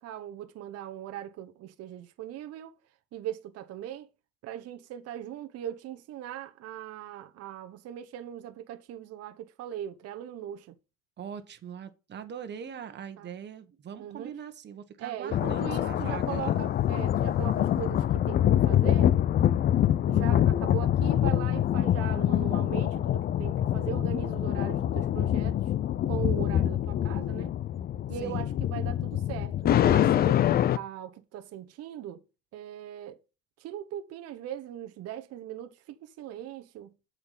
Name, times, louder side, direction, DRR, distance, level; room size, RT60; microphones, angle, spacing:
voice 1, 0.0-2.8 3.1-4.1 4.4-10.7 13.2-13.3 14.0-14.3 15.0-19.1 20.0-25.6 26.1-27.5 28.1-30.4 30.8-32.2 32.5-33.2 33.6-36.9, right 11 dB, 50° right, 1.1 m, -39 dB
voice 2, 11.2-16.5 28.2-28.5, right 8 dB, 35° right, 1.5 m, -42 dB
sound 1, 15.3-30.8, left 11 dB, 30° left, 0.4 m, -25 dB
7.9 x 5.8 x 5.8 m
supercardioid pair, 120°, 32 cm